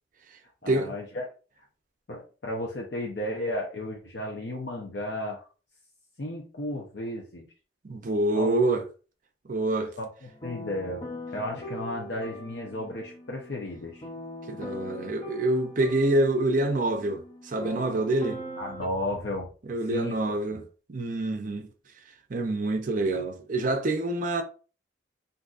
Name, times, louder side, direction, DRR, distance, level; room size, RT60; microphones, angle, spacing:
voice 1, 0.6-1.3 2.1-5.5 6.2-7.5 8.3-8.5 10.0-10.1 10.4-11.0 11.3-14.1 18.6-19.5 19.9-20.6, left 1 dB, 65° left, 0.7 m, -34 dB
voice 2, 7.8-8.8 9.5-9.9 14.5-18.4 19.7-20.6 20.9-21.7 22.3-24.4, right 2 dB, 45° right, 0.5 m, -26 dB
sound 1, 10.3-18.9, equal, 30° left, 0.5 m, -41 dB
3.8 x 2.6 x 2.4 m
head